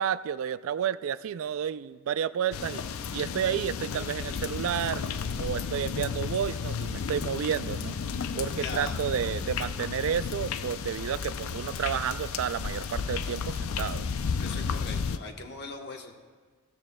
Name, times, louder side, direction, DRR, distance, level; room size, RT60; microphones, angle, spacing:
voice 1, 0.0-2.8 3.1-5.0 5.4-8.0 8.4-14.0, right 8 dB, 70° right, 15 dB, 0.3 m, -31 dB
sound 1, 2.5-15.2, left 6 dB, 75° left, 0.4 m, -33 dB
voice 2, 8.5-9.1 14.4-16.1, left 3 dB, 55° left, 3 dB, 1.0 m, -40 dB
15.0 x 13.5 x 2.2 m, 1.4 s
head